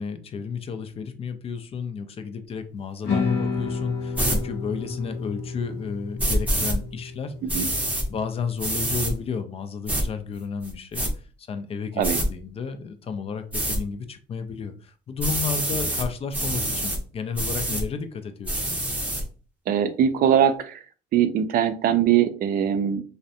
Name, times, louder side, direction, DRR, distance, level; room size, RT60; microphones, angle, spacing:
voice 1, 0.0-7.3 8.1-11.0 11.4-18.7, left 6 dB, 35° left, 8 dB, 0.4 m, -32 dB
sound 1, 3.0-9.3, left 4 dB, 80° left, 0.7 m, -31 dB
sound 2, 4.1-4.4 6.2-6.8 7.5-8.1 8.6-9.1 9.9-10.0 10.6-11.1 12.0-12.3 13.5-13.8 15.2-16.1 16.3-17.0 17.4-17.8 18.5-19.2, right 1 dB, 10° right, 0.6 m, -26 dB
voice 2, 19.7-20.8 21.1-23.0, right 9 dB, 60° right, 9 dB, 0.4 m, -21 dB
2.5 x 2.1 x 2.6 m, 0.38 s
cardioid pair, 110°, 17 cm